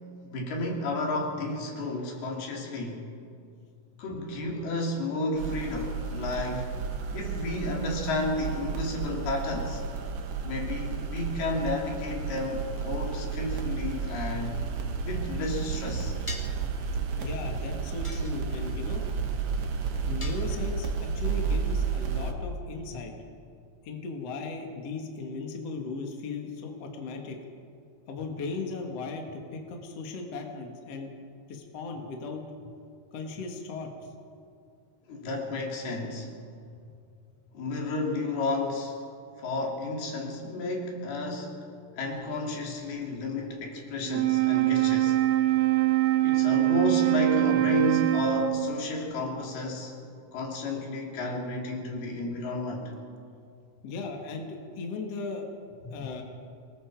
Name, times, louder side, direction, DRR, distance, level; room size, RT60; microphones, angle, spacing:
voice 1, 0.2-3.0 4.0-6.7 7.1-9.8 10.4-14.6 15.0-16.2 35.1-36.3 37.5-39.0 39.4-41.6 42.0-45.2 46.2-49.9 50.3-52.9, left 2 dB, 80° left, -1 dB, 4.7 m, -32 dB
sound 1, 5.4-22.3, right 5 dB, 60° right, 2.2 m, -32 dB
sound 2, 16.3-16.7 18.0-18.8 20.2-20.9, left 2 dB, 25° left, 0.6 m, -42 dB
voice 2, 17.2-19.2 20.1-23.1 23.8-27.4 28.1-31.1 31.5-32.7 33.1-34.1 53.8-55.5 55.8-56.2, left 4 dB, 45° left, 2 dB, 2.6 m, -37 dB
Wind instrument woodwind instrument, 44.0-48.8, right 16 dB, 80° right, 3.0 m, -24 dB
27.5 x 19.5 x 4.8 m, 2.4 s
omnidirectional pair, 4.4 m